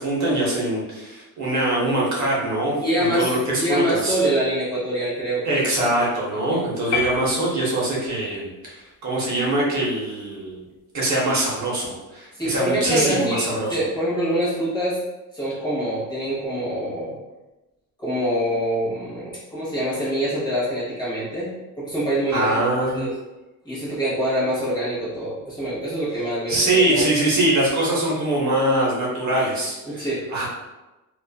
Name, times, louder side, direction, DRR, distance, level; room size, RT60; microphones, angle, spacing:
voice 1, 0.0-4.2 5.4-10.6 10.9-13.8 22.3-23.1 26.5-30.5, right 1 dB, 50° right, -5 dB, 0.7 m, -23 dB
voice 2, 2.8-6.1 6.5-6.6 12.3-15.0 15.3-17.2 18.0-22.7 22.9-23.1 23.6-26.6 26.9-27.1 29.8-30.3, equal, 10° left, -9 dB, 0.9 m, -25 dB
sound 1, 6.9-8.2, left 6 dB, 60° left, 0.5 m, -28 dB
2.4 x 2.3 x 2.3 m, 1.0 s
cardioid pair, 155°, 37 cm